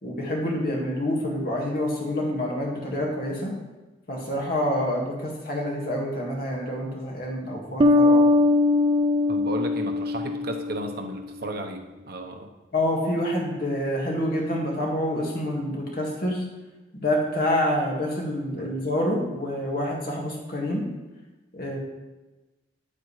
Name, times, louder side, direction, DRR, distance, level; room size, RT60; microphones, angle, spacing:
voice 1, 0.0-3.6 4.1-8.3 12.7-16.5 16.9-20.9 21.5-21.8, left 1 dB, 55° left, -2 dB, 2.0 m, -27 dB
sound 1, 7.8-11.1, left 2 dB, 30° right, 0.4 m, -21 dB
voice 2, 9.3-12.5, right 1 dB, 60° right, 3 dB, 0.9 m, -34 dB
10.0 x 8.4 x 3.2 m, 1.1 s
head